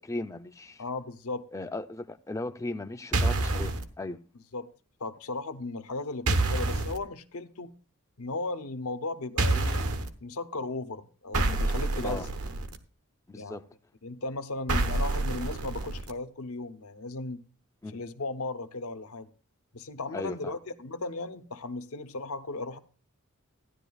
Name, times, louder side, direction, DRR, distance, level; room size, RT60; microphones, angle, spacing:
voice 1, 0.0-0.8 1.5-4.2 12.0-12.3 13.3-13.6 17.8-18.0 20.1-20.5, left 2 dB, 15° left, 0.4 m, -37 dB
voice 2, 0.8-1.5 4.5-4.7 5.0-7.7 8.2-9.9 10.2-12.3 13.3-13.6 14.0-17.4 17.9-19.3 19.7-22.8, left 3 dB, 80° left, 0.8 m, -36 dB
sound 1, 3.1-3.8 6.3-7.0 9.4-10.1 11.3-12.8 14.7-16.1, right 2 dB, 90° right, 1.1 m, -27 dB
15.5 x 10.5 x 2.3 m
head